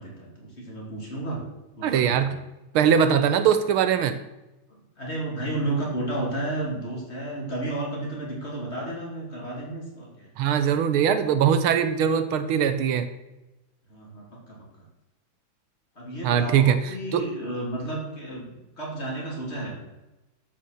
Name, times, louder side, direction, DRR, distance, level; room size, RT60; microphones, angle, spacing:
voice 1, 0.0-1.4 1.7-2.3 5.0-10.3 13.9-14.6 16.0-19.8, right 2 dB, 30° left, -3 dB, 3.1 m, -32 dB
voice 2, 1.8-2.4 2.7-4.2 10.4-13.1 16.2-17.2, right 8 dB, 80° right, 11 dB, 1.7 m, -21 dB
12.5 x 5.8 x 6.5 m, 1.0 s
omnidirectional pair, 2.3 m